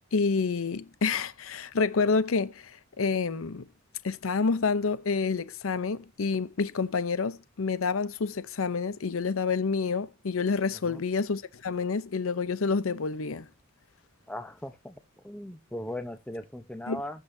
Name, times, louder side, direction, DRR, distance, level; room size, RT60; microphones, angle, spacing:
voice 1, 0.1-3.6 4.0-13.5 16.9-17.0, left 4 dB, 80° left, 0.7 m, -28 dB
voice 2, 14.3-15.0 15.2-17.2, left 1 dB, 5° left, 0.8 m, -38 dB
15.5 x 6.7 x 2.7 m
head